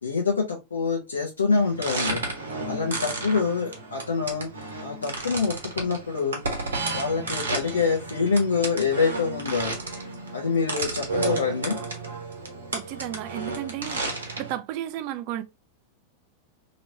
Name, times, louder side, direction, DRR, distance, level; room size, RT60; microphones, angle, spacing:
voice 1, 0.0-2.2 2.7-4.5 4.8-6.4 6.9-9.7 10.3-11.8, left 5 dB, 70° left, 0.9 m, -25 dB
sound 1, 1.6-14.5, right 3 dB, 70° right, 1.0 m, -32 dB
voice 2, 12.7-14.0 14.4-15.4, right 12 dB, 45° right, 0.4 m, -33 dB
3.0 x 2.9 x 2.7 m
figure-of-eight pair, 90°, 0 cm